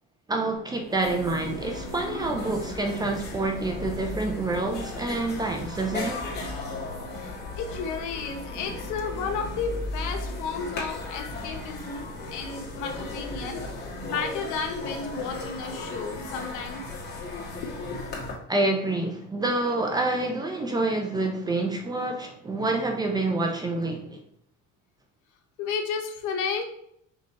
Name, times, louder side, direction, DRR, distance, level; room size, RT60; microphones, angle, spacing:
voice 1, 0.3-6.3 18.5-24.2, right 2 dB, 15° right, 0.4 m, -27 dB
sound 1, 0.6-0.7 0.8-18.3, left 2 dB, 35° left, 1.5 m, -36 dB
voice 2, 7.1-16.8 17.6-18.3 20.2-20.3 25.6-26.6, left 5 dB, 80° left, 1.0 m, -33 dB
5.2 x 2.4 x 4.1 m
cardioid pair, 165°, 29 cm